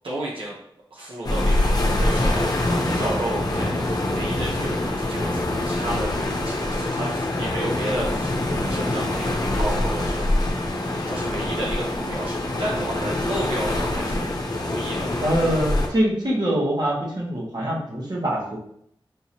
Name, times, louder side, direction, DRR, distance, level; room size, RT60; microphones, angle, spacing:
voice 1, 0.0-0.6 0.9-6.1 6.4-8.3 8.7-10.6 11.1-14.3 14.6-15.1, right 1 dB, 80° right, -5 dB, 0.9 m, -32 dB
sound 1, 1.2-15.9, left 1 dB, 45° left, 0.8 m, -24 dB
voice 2, 15.2-18.6, right 1 dB, 50° right, -4 dB, 1.5 m, -24 dB
5.7 x 3.0 x 2.8 m, 0.70 s
wide cardioid pair, 60°, 9 cm